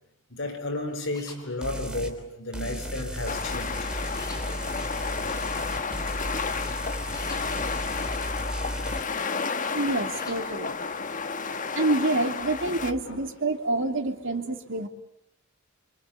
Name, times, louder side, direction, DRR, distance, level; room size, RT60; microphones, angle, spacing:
voice 1, 0.3-3.9 12.8-13.2, left 2 dB, 65° left, 4.8 m, -33 dB
sound 1, 1.1-1.4 4.2-4.4 7.1-7.4 10.1-10.4, left 2 dB, 20° left, 7.4 m, -43 dB
sound 2, 1.6-2.1 2.5-9.0, equal, 5° right, 3.3 m, -35 dB
sound 3, 3.3-12.9, left 5 dB, 40° left, 1.3 m, -31 dB
voice 2, 9.7-10.8 11.4-14.9, right 2 dB, 65° right, 3.0 m, -27 dB
27.5 x 25.5 x 8.5 m
head